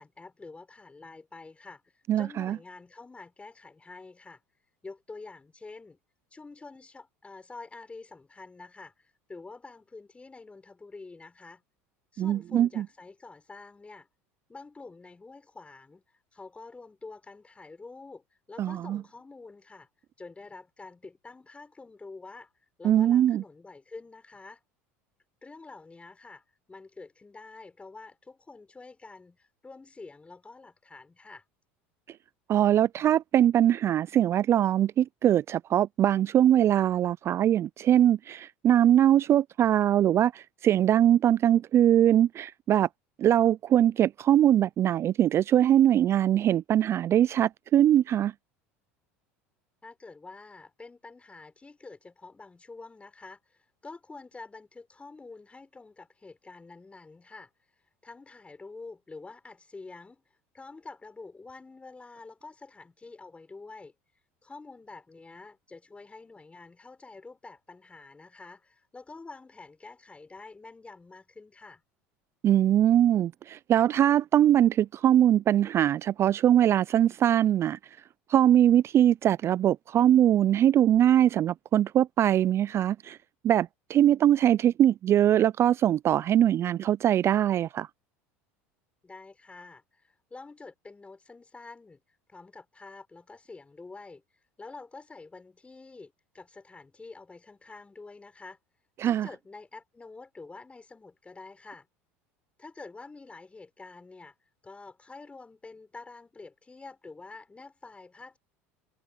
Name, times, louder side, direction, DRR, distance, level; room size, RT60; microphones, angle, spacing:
voice 1, 0.0-4.4 4.8-6.0 6.3-11.6 12.1-14.1 14.5-19.9 20.2-22.5 22.8-24.6 25.4-31.4 49.8-60.2 60.5-63.9 64.4-71.8 89.0-92.0 92.3-94.2 94.6-98.6 99.0-101.9 102.6-104.3 104.6-108.4, left 3 dB, 15° left, 6.8 m, -47 dB
voice 2, 2.1-2.6 12.2-12.8 18.6-19.0 22.8-23.4 32.5-42.9 43.2-48.3 72.4-77.8 78.3-83.2 83.4-87.9 99.0-99.3, right 11 dB, 40° right, 0.3 m, -22 dB
hypercardioid pair, 85°, 7 cm